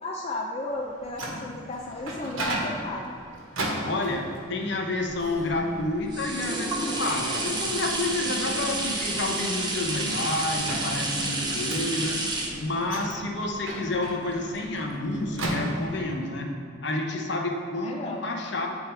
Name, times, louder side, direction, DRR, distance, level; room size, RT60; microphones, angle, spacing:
voice 1, 0.0-3.2 17.6-18.3, left 2 dB, 30° left, -2 dB, 0.4 m, -34 dB
Microwave oven, 0.8-16.3, right 1 dB, 75° right, 1.1 m, -37 dB
voice 2, 3.8-12.2 12.6-16.5 16.8-18.7, left 2 dB, 55° left, 2 dB, 0.8 m, -29 dB
sound 1, 5.1-14.8 15.4-15.5, right 2 dB, 20° right, 0.6 m, -31 dB
8.3 x 3.6 x 4.4 m, 2.4 s
head